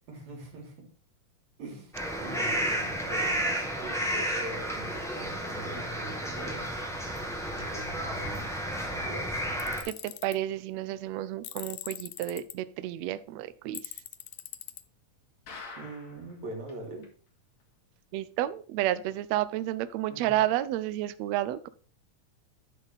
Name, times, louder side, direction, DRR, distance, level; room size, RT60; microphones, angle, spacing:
voice 1, 0.1-0.9 1.6-6.8 7.5-9.4 15.8-17.1 20.1-20.4, right 2 dB, 60° right, 0 dB, 4.0 m, -43 dB
sound 1, 1.9-9.8, equal, ahead, 0.6 m, -32 dB
Tools, 9.6-10.4 11.4-12.5 13.8-14.8, left 14 dB, 85° left, 1.4 m, -41 dB
voice 2, 9.9-13.8 18.1-21.7, right 14 dB, 85° right, 14 dB, 1.5 m, -31 dB
sound 2, 15.5-16.3 16.7-16.8 17.0-17.1 17.6-17.7, left 4 dB, 60° left, 3.2 m, -44 dB
11.5 x 4.0 x 5.2 m, 0.40 s
omnidirectional pair, 3.6 m